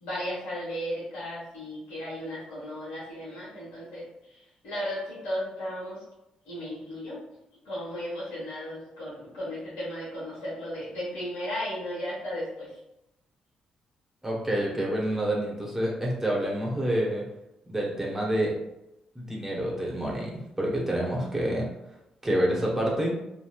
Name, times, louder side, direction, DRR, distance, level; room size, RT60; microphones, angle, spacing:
voice 1, 0.0-6.0 6.4-7.2 7.6-12.7, equal, 85° left, -9 dB, 1.3 m, -35 dB
voice 2, 14.2-17.2 17.7-18.5 19.1-21.7 22.2-23.1, right 1 dB, 15° right, -3 dB, 1.0 m, -28 dB
3.0 x 2.6 x 2.4 m, 0.87 s
supercardioid pair, 55°, 2 cm